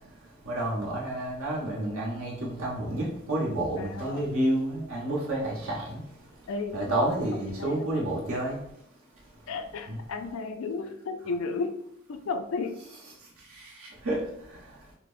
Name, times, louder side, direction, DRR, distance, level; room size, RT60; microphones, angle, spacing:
voice 1, 0.4-6.0 6.7-8.6 9.9-10.0 14.0-14.2, right 1 dB, 75° right, -4 dB, 1.2 m, -29 dB
voice 2, 3.8-4.2 6.5-7.0 7.5-7.8 9.5-11.8 12.1-12.8, left 4 dB, 65° left, 6 dB, 0.4 m, -33 dB
5.8 x 2.0 x 2.5 m, 0.76 s
head